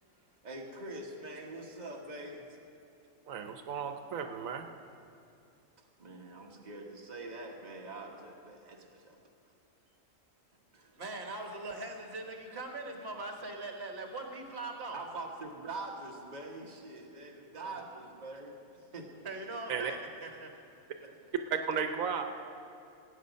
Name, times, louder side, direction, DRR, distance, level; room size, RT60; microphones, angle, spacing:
voice 1, 0.4-2.4 6.0-9.2 10.7-10.9 14.9-18.5 18.9-19.1 21.0-21.2, right 2 dB, 35° right, 0 dB, 1.4 m, -44 dB
voice 2, 3.3-4.6 19.7-19.9 21.7-22.2, right 6 dB, 90° right, 6 dB, 1.2 m, -34 dB
voice 3, 10.9-15.0 17.6-17.7 19.2-20.5, right 2 dB, 50° right, 3 dB, 1.7 m, -41 dB
18.0 x 9.0 x 5.2 m, 2.6 s
omnidirectional pair, 1.4 m